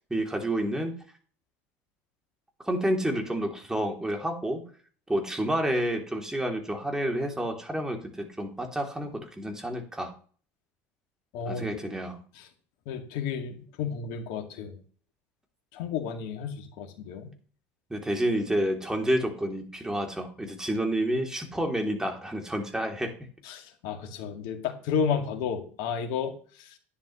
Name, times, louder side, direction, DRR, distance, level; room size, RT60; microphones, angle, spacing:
voice 1, 0.1-0.9 2.6-4.6 5.1-10.1 11.5-12.2 17.9-23.1, right 1 dB, 10° right, 2 dB, 3.0 m, -29 dB
voice 2, 11.3-11.7 12.4-12.5 12.9-14.8 15.7-17.3 23.4-26.8, left 6 dB, 70° left, 5 dB, 2.1 m, -32 dB
11.0 x 9.9 x 3.1 m, 0.43 s
hypercardioid pair, 80°, 7 cm